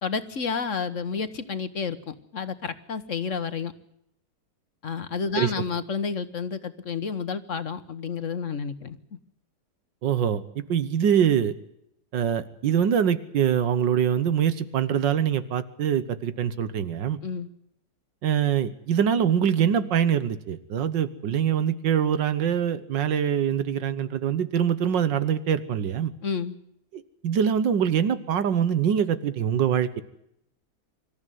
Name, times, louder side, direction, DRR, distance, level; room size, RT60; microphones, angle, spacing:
voice 1, 0.0-3.7 4.8-9.0 17.2-17.5 26.2-26.6, left 5 dB, 45° left, 12 dB, 1.4 m, -30 dB
voice 2, 10.0-10.4 10.7-11.6 12.1-17.2 18.2-26.1 26.9-30.0, right 8 dB, 85° right, 14 dB, 1.8 m, -24 dB
25.5 x 14.0 x 9.3 m, 0.76 s
omnidirectional pair, 1.9 m